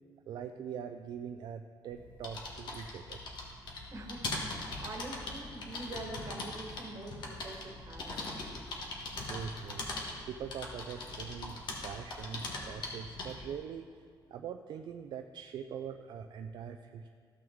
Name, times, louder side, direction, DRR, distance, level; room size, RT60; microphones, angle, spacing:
voice 1, 0.3-3.2 9.2-9.8 10.3-13.9 14.3-17.1, right 7 dB, 60° right, 6 dB, 0.4 m, -43 dB
sound 1, 1.9-13.5, left 2 dB, 60° left, 1.5 m, -41 dB
voice 2, 3.9-8.9, right 2 dB, 40° right, 2 dB, 1.4 m, -45 dB
14.0 x 6.1 x 3.6 m, 2.2 s
cardioid pair, 115°, 8 cm